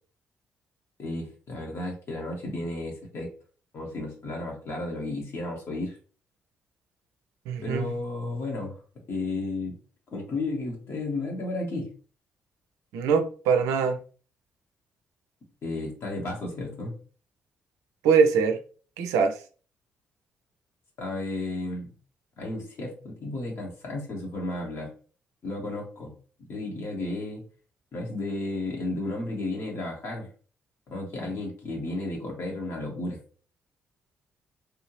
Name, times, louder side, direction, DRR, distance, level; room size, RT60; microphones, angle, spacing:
voice 1, 1.0-3.3 3.7-6.0 7.6-8.8 9.1-9.7 10.1-11.9 15.6-17.0 21.0-21.9 22.4-24.9 25.4-26.1 26.4-27.4 27.9-30.3 30.9-33.2, left 2 dB, 55° left, 1.5 m, -33 dB
voice 2, 7.5-7.9 12.9-14.0 18.0-18.6 19.0-19.4, right 6 dB, 70° right, 0.5 m, -22 dB
3.3 x 2.7 x 3.1 m
figure-of-eight pair, 40°, 6 cm